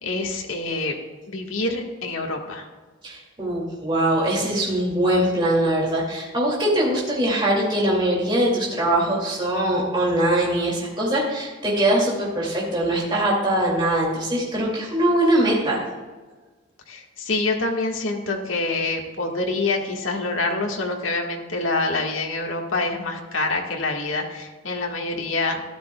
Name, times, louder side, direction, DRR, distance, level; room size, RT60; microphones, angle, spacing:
voice 1, 0.0-0.9 1.3-2.7 16.9-25.6, left 2 dB, 70° left, 1 dB, 1.5 m, -26 dB
voice 2, 3.0-15.8, right 1 dB, 25° right, -4 dB, 2.4 m, -22 dB
13.5 x 11.5 x 2.3 m, 1.3 s
head